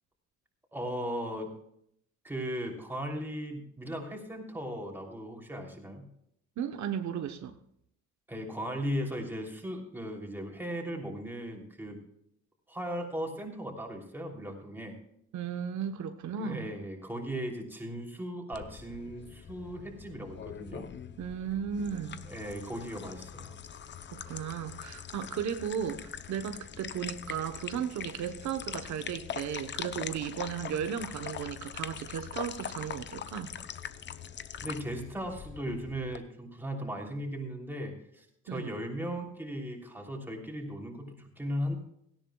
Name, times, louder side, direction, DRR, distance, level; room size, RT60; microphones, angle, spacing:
voice 1, 0.7-1.5 2.2-6.1 8.3-12.0 12.7-15.0 16.3-20.8 22.2-23.6 34.6-41.7, equal, 5° right, 3.0 m, -37 dB
voice 2, 6.6-7.6 15.3-16.7 21.2-22.3 24.1-33.5 38.5-38.7, right 8 dB, 65° right, 1.0 m, -35 dB
sound 1, 18.5-36.2, left 8 dB, 35° left, 0.7 m, -43 dB
17.5 x 16.0 x 2.3 m
cardioid pair, 160°, 31 cm